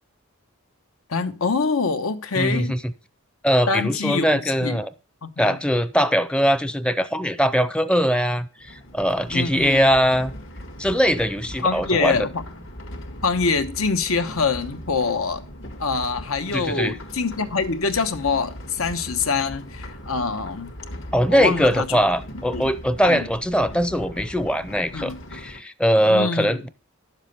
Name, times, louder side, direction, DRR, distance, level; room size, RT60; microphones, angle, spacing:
voice 1, 1.1-2.8 3.7-4.8 5.2-5.6 9.3-9.8 11.6-12.4 13.2-15.4 15.8-20.7 21.3-22.0 22.5-22.7 23.1-23.3 24.9-25.2 26.1-26.6, left 4 dB, 85° left, 1.1 m, -25 dB
voice 2, 2.3-2.9 3.4-4.9 5.4-10.3 10.8-12.3 16.5-17.0 21.1-26.7, equal, 5° left, 0.5 m, -21 dB
sound 1, 8.6-25.6, equal, 65° left, 1.7 m, -39 dB
10.5 x 7.3 x 5.4 m
head